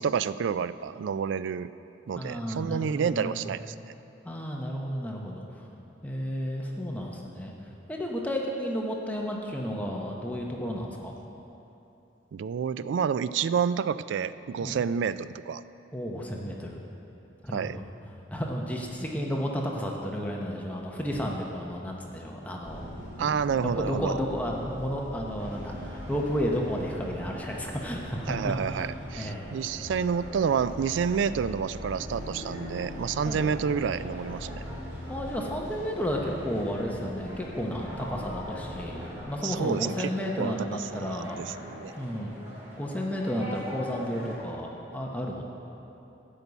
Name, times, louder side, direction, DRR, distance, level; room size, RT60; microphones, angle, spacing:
voice 1, 0.0-1.7 2.1-3.9 12.3-15.6 17.5-17.8 23.2-24.1 28.3-34.5 39.4-41.9, right 7 dB, 80° right, 15 dB, 0.3 m, -29 dB
voice 2, 2.2-3.4 4.2-5.6 6.0-7.5 7.9-11.1 14.6-14.8 15.9-16.8 17.4-17.8 18.3-22.9 23.2-23.3 23.6-28.9 29.1-29.5 33.2-33.5 35.1-41.5 42.0-42.4 42.8-45.5, equal, 10° left, -1 dB, 0.8 m, -32 dB
sound 1, 22.6-39.2, equal, 45° left, 1.8 m, -41 dB
sound 2, 25.4-44.3, equal, 15° right, 2.8 m, -44 dB
12.5 x 5.5 x 8.1 m, 2.9 s
head